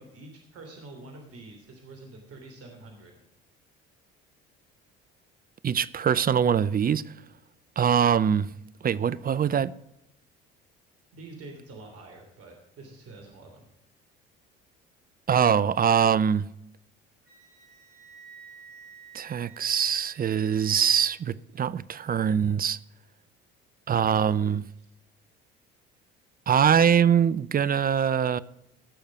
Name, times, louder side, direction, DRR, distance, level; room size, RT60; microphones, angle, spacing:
voice 1, 0.0-3.1 11.1-13.6 24.8-24.9, right 2 dB, 55° right, 3.3 m, -46 dB
voice 2, 5.6-7.0 7.8-8.5 8.8-9.7 15.3-16.4 19.1-22.8 23.9-24.6 26.5-28.4, right 8 dB, 30° right, 0.6 m, -23 dB
Wind instrument woodwind instrument, 17.2-21.1, right 7 dB, 80° right, 5.0 m, -51 dB
17.5 x 6.7 x 6.2 m
hypercardioid pair, 60°, 29 cm